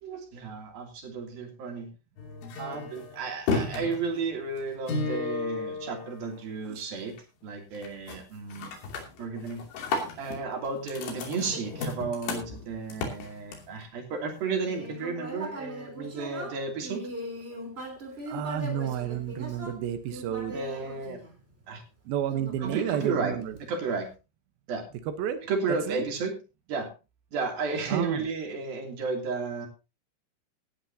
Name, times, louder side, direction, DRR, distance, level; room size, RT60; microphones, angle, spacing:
voice 1, 0.0-1.9 2.6-7.2 7.4-8.7 9.2-9.6 10.2-17.1 20.5-21.2 21.7-21.8 22.6-23.3 23.7-24.1 24.7-24.8 25.5-26.4 26.7-26.9 27.3-29.7, right 4 dB, 50° right, 2 dB, 4.4 m, -33 dB
sound 1, 2.2-6.7 7.0-7.4 7.8-8.2 8.5-13.8, left 3 dB, 65° left, 5.1 m, -34 dB
Human voice, 14.4-21.7 22.3-23.8, right 1 dB, 15° right, 2.1 m, -40 dB
voice 2, 18.3-20.6 22.1-23.5 25.2-25.4 25.9-26.1 27.9-28.2, right 10 dB, 75° right, 8 dB, 2.2 m, -31 dB
18.0 x 12.0 x 2.8 m, 0.30 s
omnidirectional pair, 5.9 m